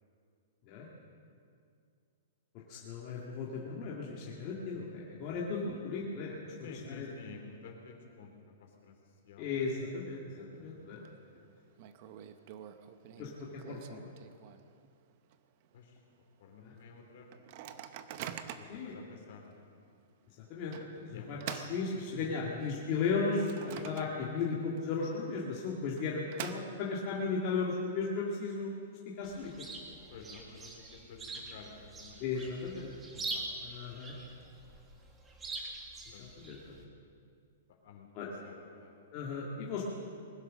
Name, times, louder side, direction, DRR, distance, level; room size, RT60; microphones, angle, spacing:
voice 1, 2.7-7.1 9.4-11.0 13.2-14.1 16.6-16.7 18.7-19.0 20.4-28.8 29.2-29.7 32.2-32.9 33.6-34.1 36.2-36.7 38.1-38.3 39.1-39.8, left 4 dB, 30° left, -4 dB, 2.0 m, -36 dB
voice 2, 5.6-6.0 6.6-8.9 9.2-9.5 13.2-13.3 15.7-16.0 16.4-17.4 18.5-19.5 21.1-21.3 21.9-22.6 23.7-23.9 30.1-32.2 32.8-33.5 36.1-36.9 37.8-38.1 38.4-38.9, left 5 dB, 55° left, 2 dB, 3.2 m, -51 dB
Microwave oven, 10.5-11.1 11.4-11.5 11.8-14.9 15.3-15.4 15.6-16.0 16.5-16.6 17.3-18.8 19.5-19.6 20.7-22.5 23.0-24.5 24.8-24.9 25.7-27.1, right 10 dB, 40° right, 0.8 m, -46 dB
Chirp tweet, 29.2-36.8, right 3 dB, 15° right, 1.7 m, -44 dB
21.0 x 10.5 x 6.4 m, 2.3 s
hypercardioid pair, 160°, 0 cm